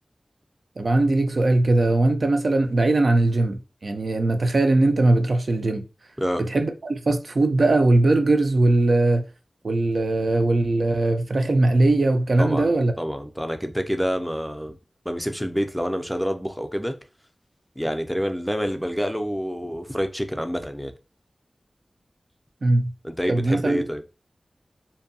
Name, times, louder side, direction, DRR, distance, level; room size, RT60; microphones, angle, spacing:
voice 1, 0.8-5.8 6.4-9.3 9.6-12.9 22.6-22.9 23.3-23.8, right 2 dB, 70° right, 0.4 m, -20 dB
voice 2, 12.4-12.7 13.0-14.8 15.1-17.0 17.8-20.9 23.0-24.0, equal, ahead, 0.4 m, -27 dB
2.6 x 2.2 x 2.6 m
wide cardioid pair, 55°, 0 cm